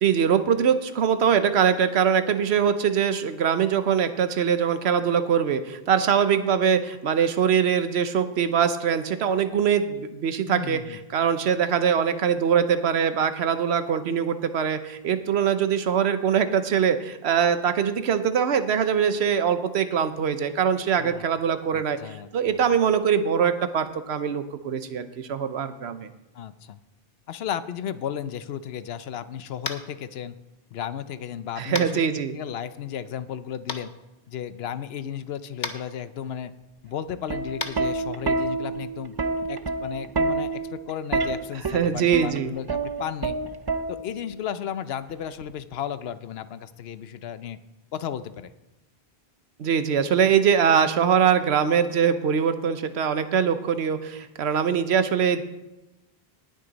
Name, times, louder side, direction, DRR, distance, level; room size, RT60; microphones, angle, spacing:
voice 1, 0.0-26.1 31.6-32.3 41.7-42.5 49.6-55.4, right 7 dB, 90° right, 11 dB, 1.1 m, -23 dB
voice 2, 10.5-11.0 21.0-21.2 21.7-22.7 26.3-26.8 27.3-30.4 30.7-32.0 32.3-33.9 34.3-36.5 36.8-39.2 39.5-43.4 43.9-47.6 47.9-48.5, left 9 dB, 75° left, 14 dB, 0.9 m, -34 dB
Tap, 29.6-29.9 31.7-31.9 33.7-33.8 35.6-35.8 37.6-37.7, left 5 dB, 50° left, 0.9 m, -30 dB
Plucked string instrument, 37.1-44.3 45.4-45.7, right 3 dB, 30° right, 0.5 m, -28 dB
18.5 x 6.5 x 4.0 m, 0.99 s
omnidirectional pair, 1.0 m